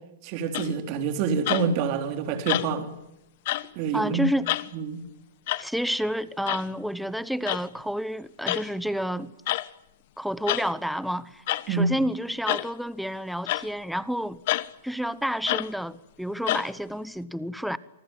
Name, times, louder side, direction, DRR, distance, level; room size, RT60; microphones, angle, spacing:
voice 1, 0.2-2.9 3.8-4.2 4.7-5.0 11.7-11.9, right 5 dB, 40° right, 3.6 m, -27 dB
sound 1, 0.5-0.9 1.5-1.8 2.5-2.9 3.5-3.7 4.5-4.7 5.5-5.7 6.5-6.7 7.5-7.6 8.5-8.7 9.5-9.7 10.5-10.7 11.5-11.7 12.5-12.7 13.5-13.7 14.5-14.7 15.5-15.7 16.5-16.7, left 16 dB, 50° left, 1.0 m, -28 dB
voice 2, 3.9-4.5 5.6-9.3 10.2-14.4 14.8-17.8, equal, ahead, 0.9 m, -30 dB
27.0 x 19.5 x 9.3 m
hypercardioid pair, 150°, 0 cm